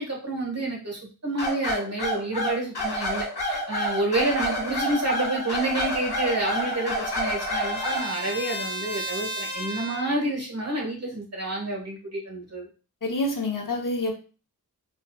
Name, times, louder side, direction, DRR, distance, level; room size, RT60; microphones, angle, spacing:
voice 1, 0.0-12.7, right 2 dB, 40° right, -2 dB, 1.4 m, -29 dB
sound 1, 1.4-8.1, equal, 85° left, 1.4 m, -28 dB
Trumpet, 6.0-10.3, equal, 15° left, 0.7 m, -35 dB
voice 2, 13.0-14.1, left 2 dB, 55° left, 2 dB, 0.8 m, -27 dB
4.2 x 2.3 x 2.2 m, 0.35 s
wide cardioid pair, 50°, 38 cm